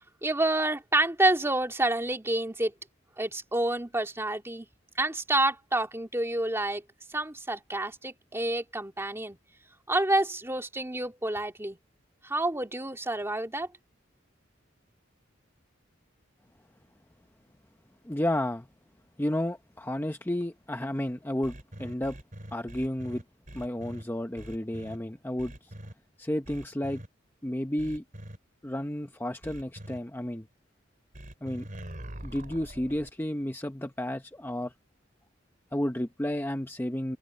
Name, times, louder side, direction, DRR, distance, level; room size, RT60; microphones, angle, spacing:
voice 1, 0.2-2.7 3.2-4.7 5.0-6.8 7.1-9.4 9.9-11.8 12.2-13.7, right 2 dB, 15° right, 2.2 m, -28 dB
voice 2, 18.0-18.7 19.2-22.2 22.5-23.2 23.5-25.7 26.2-27.0 27.4-28.0 28.6-30.5 31.4-31.7 32.2-34.7 35.7-37.2, left 1 dB, 10° left, 0.8 m, -32 dB
sound 1, 21.4-24.0 24.4-25.0 25.4-25.9 26.4-27.1 27.8-28.4 29.4-30.0 31.1-33.1, right 1 dB, 45° right, 3.6 m, -43 dB
head